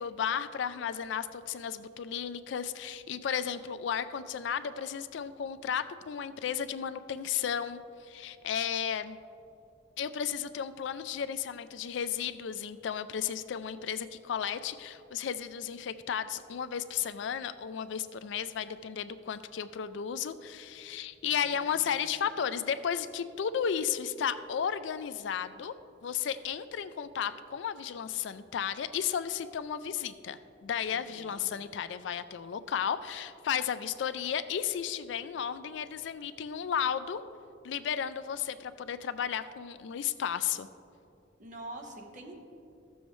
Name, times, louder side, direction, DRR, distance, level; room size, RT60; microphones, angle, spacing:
voice 1, 0.0-9.2 10.0-25.7 26.0-37.2 37.6-40.7, left 8 dB, 65° left, 13 dB, 0.3 m, -34 dB
voice 2, 21.2-22.3 30.9-31.5 41.4-42.4, right 1 dB, 40° right, 2 dB, 1.0 m, -47 dB
14.5 x 7.0 x 3.1 m, 2.7 s
head